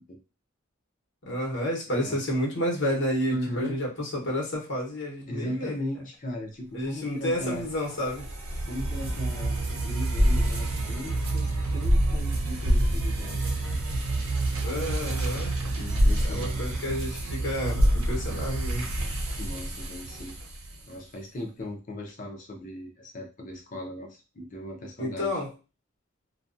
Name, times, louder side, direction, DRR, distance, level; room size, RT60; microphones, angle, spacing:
voice 1, 1.2-5.8 6.7-8.3 14.6-15.6 16.0-18.9 25.0-25.5, equal, 55° left, 1.0 m, -30 dB
voice 2, 3.3-3.8 5.3-7.7 8.6-13.8 15.7-16.8 19.3-20.4 20.9-25.4, left 1 dB, 35° left, 0.6 m, -37 dB
sound 1, 7.4-20.8, right 1 dB, 75° right, 0.7 m, -27 dB
2.4 x 2.2 x 2.5 m
head